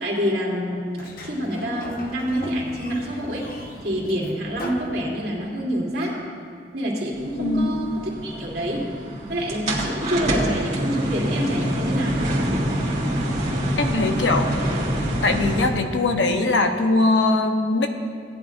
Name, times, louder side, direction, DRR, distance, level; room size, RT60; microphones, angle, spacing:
voice 1, 0.0-6.2 6.7-7.9 8.2-8.9 9.3-12.2, equal, 60° right, -4 dB, 2.5 m, -27 dB
Sliding door, 0.9-5.6, equal, 55° left, 1.0 m, -38 dB
sound 1, 7.1-15.7, equal, 40° right, 2.0 m, -26 dB
voice 2, 7.4-7.8 13.8-14.5 15.2-17.9, left 2 dB, 80° left, 5 dB, 0.9 m, -21 dB
17.0 x 10.5 x 2.6 m, 2.3 s
head